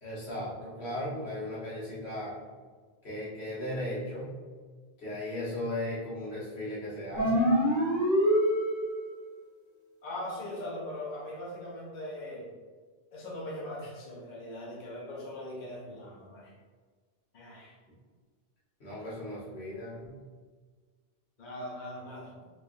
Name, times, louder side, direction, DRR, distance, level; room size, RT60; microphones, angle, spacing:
voice 1, 0.0-2.3 3.0-4.3 5.0-7.5 18.8-20.2, left 1 dB, 85° left, -9 dB, 1.6 m, -36 dB
sound 1, 7.2-9.1, equal, 20° left, 1.0 m, -25 dB
voice 2, 10.0-12.4 13.1-16.5 17.3-17.7 21.4-22.3, left 1 dB, 50° left, -5 dB, 0.9 m, -40 dB
3.4 x 3.3 x 2.5 m, 1.5 s
omnidirectional pair, 1.0 m